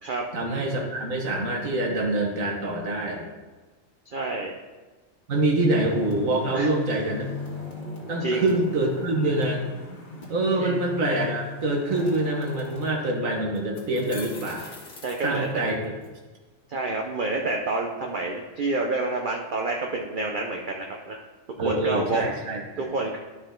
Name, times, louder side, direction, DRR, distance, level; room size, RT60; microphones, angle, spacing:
voice 1, 0.3-3.3 5.3-7.3 8.1-9.6 10.3-14.7 15.2-15.9 21.6-22.9, right 2 dB, 85° right, 0 dB, 1.8 m, -25 dB
voice 2, 4.1-4.5 6.5-6.7 8.2-8.5 10.6-10.8 15.0-15.5 16.7-21.2 21.6-22.3 22.8-23.2, right 3 dB, 45° right, 1 dB, 0.8 m, -28 dB
sound 1, 5.9-12.9, left 2 dB, 40° left, 1.9 m, -38 dB
sound 2, 13.6-16.1, left 3 dB, 60° left, 1.7 m, -44 dB
12.5 x 4.9 x 3.8 m, 1.3 s
omnidirectional pair, 1.4 m